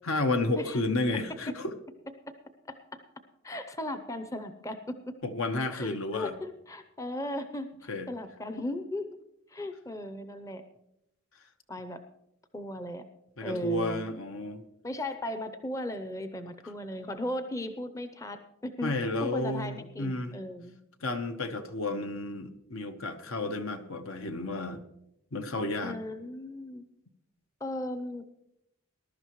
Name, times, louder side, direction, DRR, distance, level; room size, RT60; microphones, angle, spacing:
voice 1, 0.0-1.7 5.2-6.3 7.9-8.1 13.4-14.7 18.8-20.4 21.0-24.8 25.3-26.0, left 2 dB, 75° left, 8 dB, 1.0 m, -31 dB
voice 2, 3.4-4.9 5.7-9.0 9.5-10.6 11.7-12.0 12.5-13.0 13.4-14.0 14.8-18.9 19.2-20.7 21.9-22.1 25.8-26.8 27.6-28.2, left 1 dB, 15° left, 10 dB, 0.6 m, -37 dB
20.0 x 11.5 x 3.1 m, 0.81 s
head